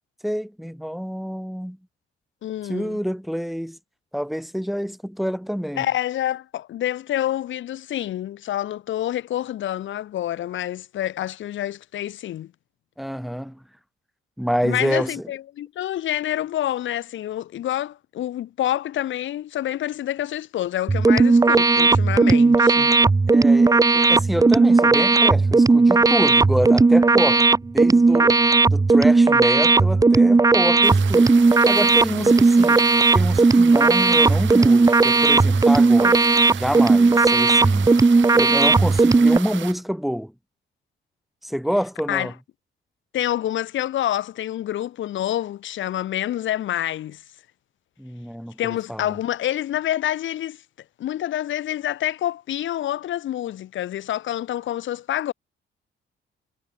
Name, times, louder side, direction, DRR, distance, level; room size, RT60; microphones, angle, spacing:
voice 1, 0.2-1.8 2.7-3.8 4.1-5.9 13.0-13.6 14.4-15.2 23.3-28.4 28.7-31.3 31.7-32.9 33.1-38.0 38.3-40.3 41.4-42.3 48.0-49.2, equal, ahead, 3.6 m, -27 dB
voice 2, 2.4-3.0 5.8-12.5 14.6-22.9 32.1-32.3 42.1-42.3 43.1-47.2 48.6-50.6 51.0-55.3, left 12 dB, 75° left, 2.3 m, -27 dB
sound 1, 20.9-39.4, right 3 dB, 20° right, 0.8 m, -16 dB
sound 2, 30.8-39.7, right 12 dB, 70° right, 2.0 m, -35 dB
cardioid pair, 90°, 20 cm